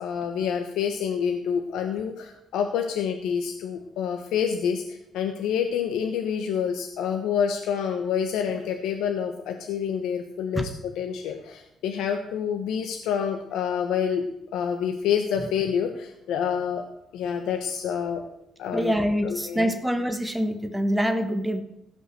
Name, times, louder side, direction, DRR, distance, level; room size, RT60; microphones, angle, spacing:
voice 1, 0.0-14.3 14.5-16.8 17.1-18.2 18.6-18.9 19.2-19.8, left 7 dB, 90° left, 5 dB, 1.1 m, -27 dB
voice 2, 18.7-21.6, equal, 5° right, 6 dB, 1.5 m, -25 dB
15.5 x 5.5 x 7.9 m, 0.83 s
cardioid pair, 90°, 0 cm